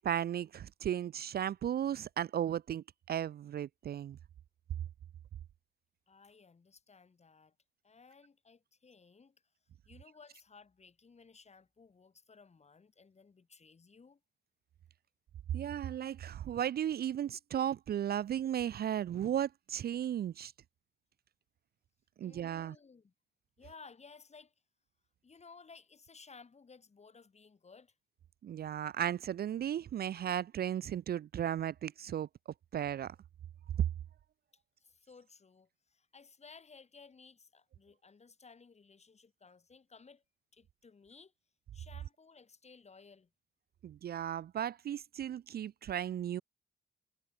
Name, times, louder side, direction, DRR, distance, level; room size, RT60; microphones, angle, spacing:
voice 1, 0.0-4.2 15.5-20.5 22.2-22.8 28.4-32.3 32.7-33.2 43.8-46.4, right 10 dB, 50° right, 0.6 m, -35 dB
voice 2, 6.1-7.6 7.8-9.4 9.8-14.2 22.2-23.1 23.6-24.5 25.2-27.9 34.8-40.2 40.5-41.3 41.7-43.3, left 5 dB, 35° left, 7.7 m, -58 dB
cardioid pair, 90°, 20 cm